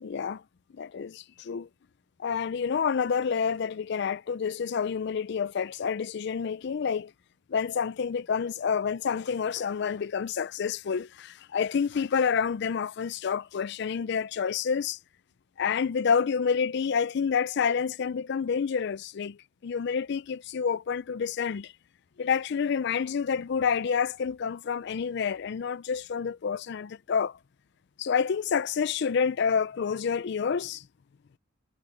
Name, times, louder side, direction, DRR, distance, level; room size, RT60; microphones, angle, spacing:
voice 1, 0.0-0.4 0.7-1.7 2.2-7.1 7.5-15.0 15.6-21.7 22.2-27.4 28.0-30.9, left 6 dB, 55° left, 0.4 m, -28 dB
head